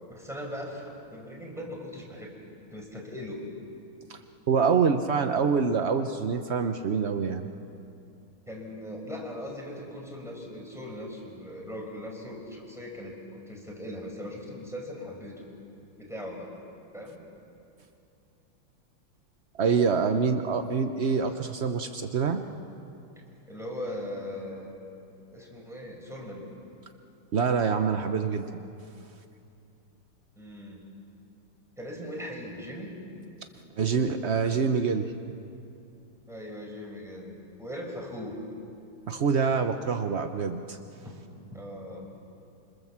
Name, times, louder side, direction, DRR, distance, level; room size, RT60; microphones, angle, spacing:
voice 1, 0.0-2.4 2.7-3.4 8.5-15.4 16.0-16.5 16.9-17.2 23.5-24.8 25.3-26.5 30.4-30.9 31.8-32.9 36.3-38.4 41.0-41.1 41.5-42.1, left 1 dB, ahead, -1 dB, 5.2 m, -39 dB
voice 2, 4.5-7.4 19.6-22.4 27.3-28.5 33.8-35.1 39.1-40.8, right 5 dB, 65° right, 6 dB, 0.6 m, -25 dB
27.0 x 25.5 x 7.3 m, 2.7 s
omnidirectional pair, 2.4 m